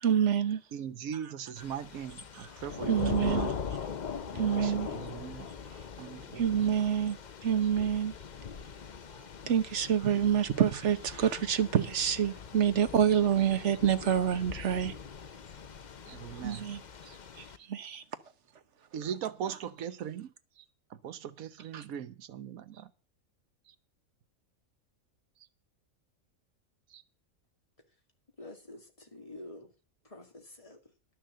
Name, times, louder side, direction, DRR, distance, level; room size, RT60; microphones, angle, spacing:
voice 1, 0.0-0.6 2.3-2.5 2.9-3.6 4.3-4.9 6.4-8.1 9.5-14.9 16.3-16.8 17.4-18.0 21.7-21.8, right 8 dB, 60° right, 1.3 m, -27 dB
voice 2, 0.7-3.6 4.3-5.5 6.0-6.7 16.1-16.7 17.0-17.2 18.9-20.6 21.0-22.9 23.7-23.8 26.9-27.0, right 8 dB, 85° right, 1.3 m, -40 dB
Thunder / Rain, 1.6-17.6, left 6 dB, 45° left, 0.7 m, -41 dB
voice 3, 28.4-29.7 30.0-30.9, left 1 dB, 25° left, 2.3 m, -48 dB
11.5 x 6.5 x 7.5 m
omnidirectional pair, 1.4 m